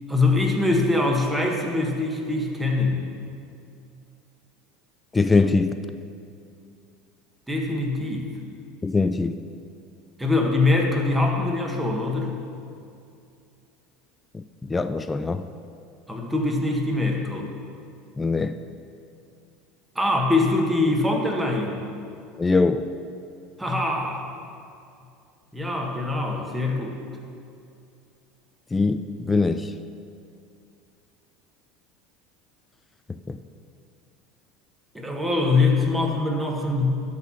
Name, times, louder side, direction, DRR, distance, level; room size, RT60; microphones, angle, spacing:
voice 1, 0.1-3.1 7.5-8.3 10.2-12.4 16.1-17.5 19.9-21.9 23.6-24.3 25.5-27.0 34.9-37.0, left 2 dB, 10° right, 1 dB, 1.4 m, -23 dB
voice 2, 5.1-5.8 8.8-9.3 14.3-15.4 18.2-18.5 22.4-22.8 28.7-29.7 33.1-33.4, left 3 dB, 15° left, 10 dB, 0.3 m, -22 dB
11.5 x 4.2 x 6.3 m, 2.5 s
hypercardioid pair, 90°, 0 cm